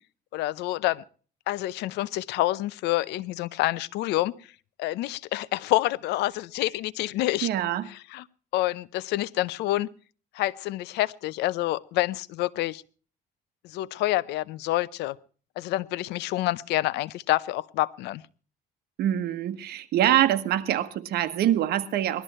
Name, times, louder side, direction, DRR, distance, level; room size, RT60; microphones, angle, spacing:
voice 1, 0.3-1.0 1.5-4.3 4.8-7.5 7.9-8.2 8.5-9.9 10.3-12.8 13.6-15.2 15.6-18.2, left 17 dB, 85° left, 0.7 m, -27 dB
voice 2, 7.4-7.9 19.0-22.2, right 12 dB, 70° right, 1.5 m, -24 dB
19.5 x 12.5 x 4.3 m
cardioid pair, 110°, 17 cm